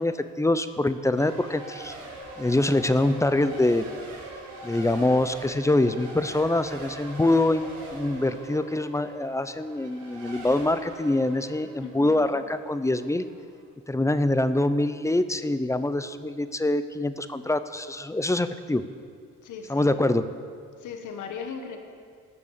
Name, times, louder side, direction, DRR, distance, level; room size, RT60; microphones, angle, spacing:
voice 1, 0.0-1.9 2.4-3.9 4.6-7.7 7.9-13.3 13.9-18.8 19.7-20.2, left 2 dB, 10° left, 11 dB, 0.7 m, -24 dB
Race car auto racing / Accelerating revving vroom / Mechanisms, 1.1-13.7, right 2 dB, 70° right, 4.5 m, -42 dB
voice 2, 11.8-12.3 19.4-19.9 20.8-21.8, left 6 dB, 80° left, 5 dB, 1.6 m, -38 dB
18.5 x 6.9 x 7.5 m, 2.1 s
cardioid pair, 90°, 30 cm